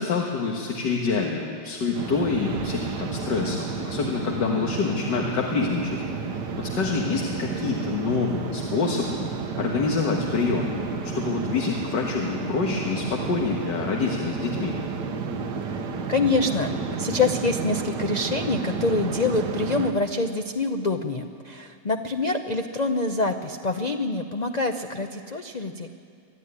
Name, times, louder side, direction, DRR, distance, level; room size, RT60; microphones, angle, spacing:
voice 1, 0.0-6.0 6.6-9.2 9.6-10.7 11.0-14.7, left 4 dB, 85° left, 0 dB, 2.1 m, -26 dB
sound 1, 1.9-19.9, right 5 dB, 80° right, 1.8 m, -31 dB
voice 2, 15.7-16.7 17.0-25.9, left 3 dB, 60° left, 6 dB, 0.4 m, -26 dB
24.5 x 11.5 x 9.8 m, 2.3 s
omnidirectional pair, 1.8 m